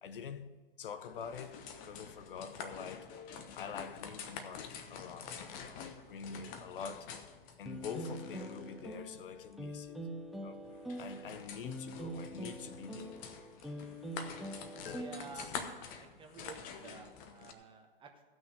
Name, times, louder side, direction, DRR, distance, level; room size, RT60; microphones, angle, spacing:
voice 1, 0.0-0.5 0.8-3.1 3.5-7.1 7.6-10.0 10.4-10.6 11.0-13.2 14.8-15.5, left 7 dB, 60° left, 0.8 m, -46 dB
sound 1, 1.0-17.5, left 6 dB, 30° left, 1.0 m, -48 dB
sound 2, 7.7-15.7, right 1 dB, ahead, 0.6 m, -44 dB
voice 2, 14.9-15.7 15.9-18.2, right 5 dB, 15° right, 1.2 m, -51 dB
16.0 x 6.2 x 5.3 m
hypercardioid pair, 120°, 30 cm